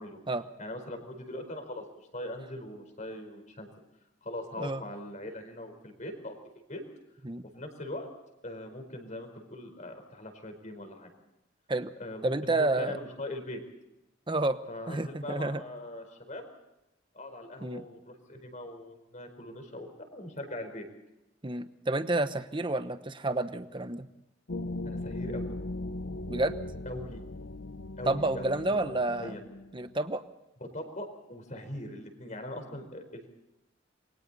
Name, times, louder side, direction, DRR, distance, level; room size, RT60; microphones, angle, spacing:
voice 1, 0.6-1.8 2.1-3.7 4.2-6.4 6.7-6.8 7.5-8.1 8.4-11.1 12.0-13.6 14.7-16.5 17.1-20.9 24.8-25.5 26.8-27.2 28.0-28.9 29.2-29.4 30.6-33.3, left 1 dB, 40° left, 6 dB, 4.6 m, -41 dB
voice 2, 12.2-13.0 14.3-14.6 14.9-15.6 17.6-17.8 21.4-24.1 26.3-26.6 28.1-29.3 29.7-30.2, right 2 dB, 25° right, 10 dB, 1.1 m, -30 dB
sound 1, 24.5-29.9, left 2 dB, 75° left, 0.9 m, -38 dB
28.5 x 23.0 x 4.2 m, 0.91 s
head